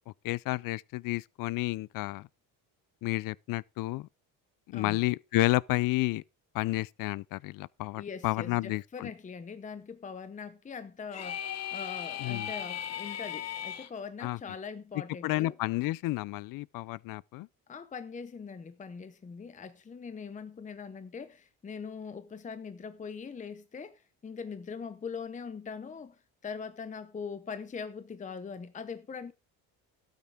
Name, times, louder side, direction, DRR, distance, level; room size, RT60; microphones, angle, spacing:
voice 1, 0.2-2.3 3.0-4.1 4.7-6.2 6.5-9.1 12.2-12.5 14.2-14.4 15.2-17.5, left 19 dB, 60° left, 0.5 m, -31 dB
voice 2, 4.7-5.1 8.0-15.6 17.7-29.3, left 5 dB, 20° left, 0.8 m, -42 dB
sound 1, 11.1-13.9, left 10 dB, 45° left, 1.1 m, -37 dB
12.5 x 9.1 x 3.6 m
cardioid pair, 120°, 37 cm